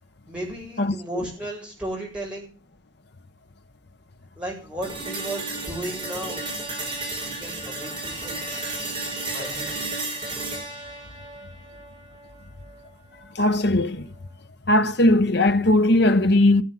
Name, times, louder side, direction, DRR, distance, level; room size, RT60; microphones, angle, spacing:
voice 1, 0.3-2.5 4.4-6.4 7.2-8.4 9.3-9.7, right 1 dB, 5° right, 7.8 m, -34 dB
voice 2, 0.8-1.3 13.3-14.1 14.7-16.6, left 1 dB, 55° left, 1.0 m, -19 dB
sound 1, 4.8-12.8, right 2 dB, 25° right, 6.4 m, -33 dB
15.5 x 9.0 x 7.5 m
head